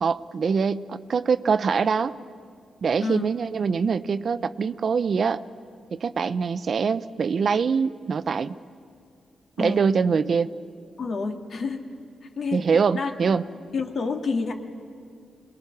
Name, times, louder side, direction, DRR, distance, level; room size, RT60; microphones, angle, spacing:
voice 1, 0.0-2.2 2.8-5.4 5.9-8.5 9.6-10.5 12.5-13.4, right 5 dB, 55° right, 14 dB, 0.5 m, -24 dB
voice 2, 3.0-3.3 9.6-9.8 11.0-11.9 12.2-12.7 12.9-13.4 13.7-14.5, left 4 dB, 60° left, 4 dB, 1.7 m, -29 dB
26.0 x 20.5 x 5.9 m, 2.2 s
cardioid pair, 90°, 0 cm